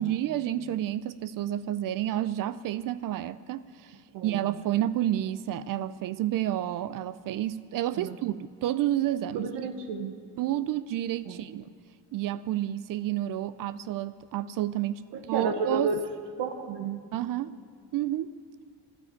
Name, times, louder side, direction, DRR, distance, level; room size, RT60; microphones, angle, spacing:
voice 1, 0.0-4.0 4.2-9.5 10.4-11.7 12.1-15.9 17.1-17.5 17.9-18.3, right 12 dB, 55° right, 15 dB, 0.5 m, -30 dB
voice 2, 4.1-4.4 7.9-8.2 9.3-10.1 11.2-11.4 15.1-16.0 16.4-17.0, right 5 dB, 80° right, 6 dB, 1.2 m, -31 dB
12.5 x 9.5 x 9.7 m, 2.3 s
cardioid pair, 100°, 41 cm